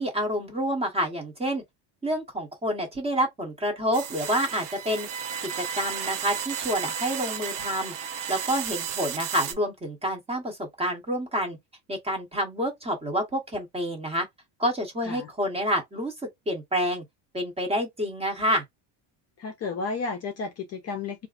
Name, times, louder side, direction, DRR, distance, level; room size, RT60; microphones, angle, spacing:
voice 1, 0.0-1.6 2.0-5.1 5.4-7.9 8.3-11.6 11.9-14.3 14.6-16.1 16.5-17.0 17.3-18.6, equal, 15° right, 0.7 m, -28 dB
sound 1, 3.9-9.5, right 8 dB, 45° right, 0.6 m, -33 dB
voice 2, 19.4-21.3, left 4 dB, 35° left, 0.5 m, -32 dB
3.8 x 2.5 x 2.3 m
cardioid pair, 180°, 46 cm